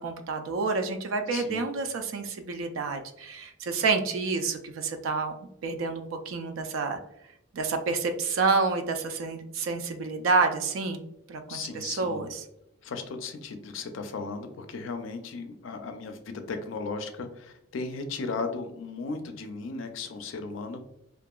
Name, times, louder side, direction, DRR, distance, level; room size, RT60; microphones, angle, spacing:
voice 1, 0.0-5.3 5.6-7.0 7.5-11.0 11.3-12.4, right 4 dB, 80° right, 7 dB, 0.3 m, -29 dB
voice 2, 1.3-1.6 11.5-12.3 12.8-20.8, left 4 dB, 75° left, 7 dB, 0.4 m, -36 dB
2.7 x 2.4 x 2.2 m, 0.80 s
head